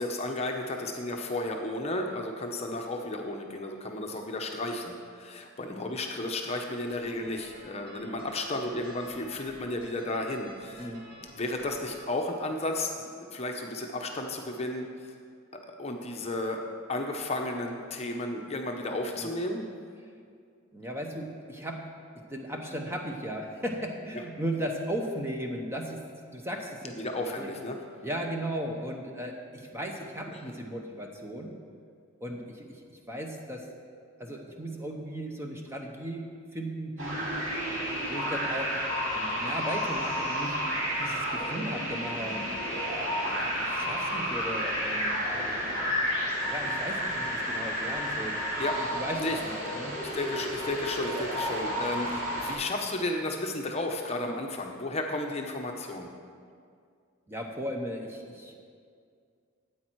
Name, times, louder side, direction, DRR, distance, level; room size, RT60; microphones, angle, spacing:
voice 1, 0.0-10.9 11.4-15.1 15.5-19.7 26.9-27.8 30.3-30.5 48.6-48.8 49.2-49.4 50.1-56.1, left 2 dB, 30° left, 2 dB, 0.8 m, -33 dB
sound 1, 6.9-12.0, equal, 50° right, 1.8 m, -50 dB
voice 2, 10.8-11.1 19.2-19.3 20.7-21.9 22.1-26.0 26.3-27.5 28.0-31.5 32.2-33.7 34.2-37.3 38.1-38.8 39.1-40.6 41.0-42.4 43.2-45.2 46.5-48.4 48.8-50.0 57.3-58.5, right 1 dB, 10° right, 1 dB, 0.9 m, -36 dB
sound 2, 37.0-52.5, equal, 65° right, 3.0 m, -31 dB
13.0 x 8.8 x 4.6 m, 2.2 s
head